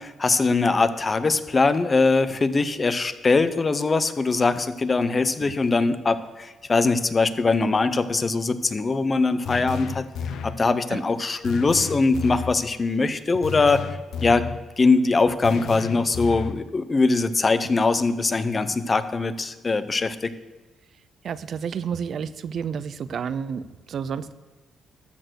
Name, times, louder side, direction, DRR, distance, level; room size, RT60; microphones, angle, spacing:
voice 1, 0.0-10.1 10.4-14.0 14.2-14.5 14.8-20.3, left 3 dB, 30° left, 12 dB, 0.8 m, -22 dB
sound 1, 9.5-10.7 11.4-12.6 13.4-14.6 15.4-16.6, left 6 dB, 75° left, 0.6 m, -32 dB
voice 2, 21.2-24.3, right 7 dB, 60° right, 15 dB, 0.5 m, -30 dB
13.0 x 6.6 x 6.3 m, 1.2 s
cardioid pair, 90°, 0 cm